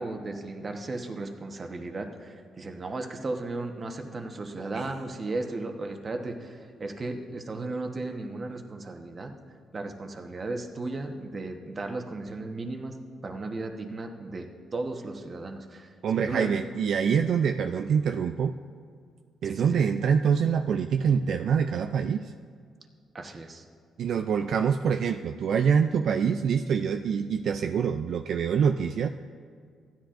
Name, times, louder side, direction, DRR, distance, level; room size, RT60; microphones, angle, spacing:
voice 1, 0.0-9.3 9.7-13.0 13.2-14.5 14.7-15.9 16.3-16.5 17.2-17.3 19.4-19.8 23.1-23.6, right 2 dB, 35° right, 4 dB, 1.1 m, -35 dB
voice 2, 16.0-18.5 19.4-22.3 24.0-29.1, right 7 dB, 65° right, 6 dB, 0.3 m, -25 dB
15.5 x 10.0 x 2.5 m, 2.1 s
cardioid pair, 90°, 0 cm